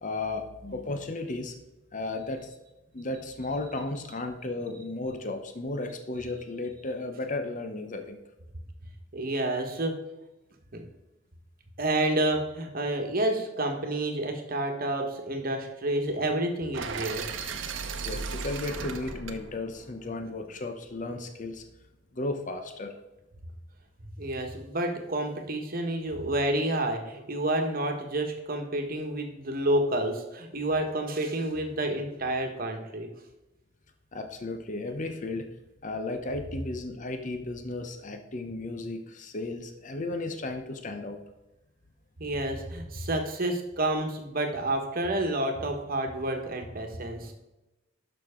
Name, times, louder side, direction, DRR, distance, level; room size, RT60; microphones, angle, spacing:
voice 1, 0.0-1.6 1.9-2.5 2.9-8.2 18.0-21.6 22.1-22.9 34.1-35.5 35.8-41.2, left 2 dB, 40° left, 6 dB, 0.8 m, -34 dB
voice 2, 9.1-9.9 10.7-10.8 11.8-17.2 24.2-33.1 42.2-47.3, right 1 dB, 50° right, 4 dB, 1.4 m, -29 dB
sound 1, 16.7-20.8, right 5 dB, 75° right, 0.8 m, -37 dB
11.5 x 6.1 x 3.7 m, 1.0 s
head